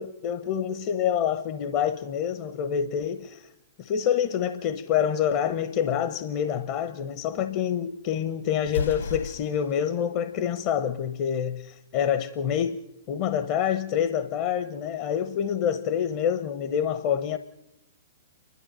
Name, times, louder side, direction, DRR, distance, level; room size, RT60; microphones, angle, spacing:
voice 1, 0.0-3.5 3.8-12.8 13.1-17.4, left 9 dB, 45° left, 1.0 m, -27 dB
Explosion, 8.6-9.8, left 4 dB, 80° left, 3.7 m, -32 dB
29.0 x 12.5 x 7.5 m
hypercardioid pair, 115°, 0 cm